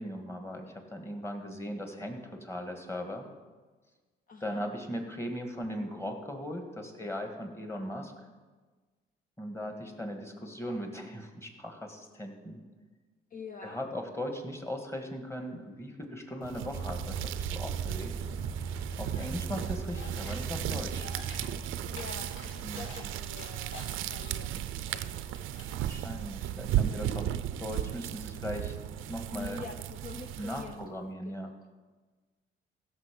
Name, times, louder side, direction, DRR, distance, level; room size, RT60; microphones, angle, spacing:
voice 1, 0.0-3.3 4.4-8.1 9.4-12.6 13.6-18.1 19.0-21.1 22.6-22.9 25.7-27.3 27.6-28.8 29.1-29.6 30.4-31.5, equal, 15° left, 4 dB, 1.9 m, -38 dB
voice 2, 4.3-4.6 13.3-13.9 21.9-25.8 29.4-30.8 31.2-31.5, left 5 dB, 45° left, 5 dB, 0.8 m, -46 dB
sound 1, 16.4-30.9, right 12 dB, 90° right, 0.5 m, -35 dB
sound 2, 16.7-23.3, right 4 dB, 20° right, 0.4 m, -40 dB
sound 3, 19.1-19.3 19.5-20.4 20.7-21.5 21.8-23.0 23.3-24.9 25.2-25.7, left 2 dB, 70° left, 3.1 m, -48 dB
15.5 x 6.7 x 5.3 m, 1.3 s
cardioid pair, 90°, 20 cm